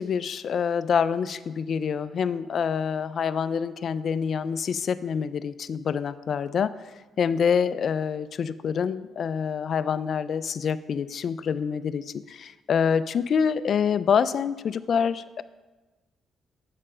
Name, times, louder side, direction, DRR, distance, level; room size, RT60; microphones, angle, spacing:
voice 1, 0.0-6.8 7.2-15.4, left 7 dB, 55° left, 14 dB, 0.3 m, -26 dB
7.5 x 4.9 x 5.5 m, 1.2 s
cardioid pair, 90°, 0 cm